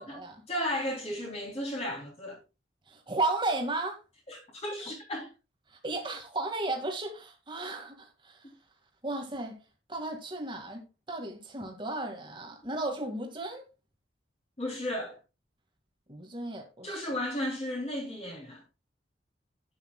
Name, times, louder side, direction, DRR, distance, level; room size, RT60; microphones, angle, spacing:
voice 1, 0.0-2.4 4.3-5.3 14.6-15.2 16.8-18.6, left 1 dB, 35° left, 3.4 m, -34 dB
voice 2, 2.9-4.0 5.8-8.4 9.0-9.6 9.9-13.6 16.1-17.1, right 2 dB, 25° right, 1.9 m, -34 dB
11.5 x 8.9 x 2.3 m
head